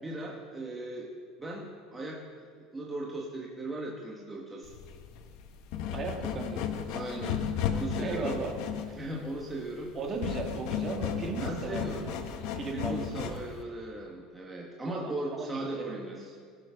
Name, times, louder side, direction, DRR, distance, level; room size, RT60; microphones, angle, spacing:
voice 1, 0.0-1.1 1.4-4.7 6.9-7.4 7.7-8.4 8.9-9.9 11.4-12.1 12.7-16.4, right 2 dB, 10° right, -2 dB, 1.1 m, -38 dB
sound 1, 4.6-13.6, left 8 dB, 60° left, 1.0 m, -34 dB
voice 2, 5.9-6.8 8.0-8.5 8.9-9.0 9.9-12.2 12.6-13.4 14.9-15.9, right 4 dB, 30° right, 2 dB, 1.6 m, -37 dB
17.5 x 6.5 x 5.7 m, 2.1 s
cardioid pair, 150°, 0 cm